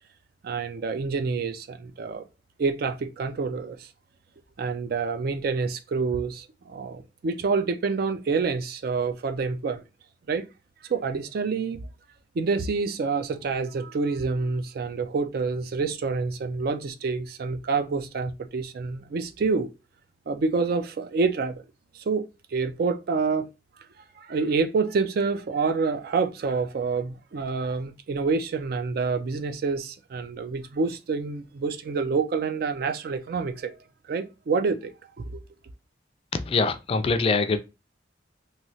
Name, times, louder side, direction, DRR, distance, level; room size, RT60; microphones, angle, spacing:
voice 1, 0.4-2.2 2.6-3.9 4.6-9.8 10.3-10.4 10.8-11.9 12.3-19.7 20.3-21.6 21.9-23.5 24.2-33.8 34.1-35.4, right 4 dB, 55° right, 0.3 m, -27 dB
voice 2, 36.3-37.6, left 4 dB, 30° left, 0.3 m, -23 dB
3.1 x 2.7 x 2.7 m
head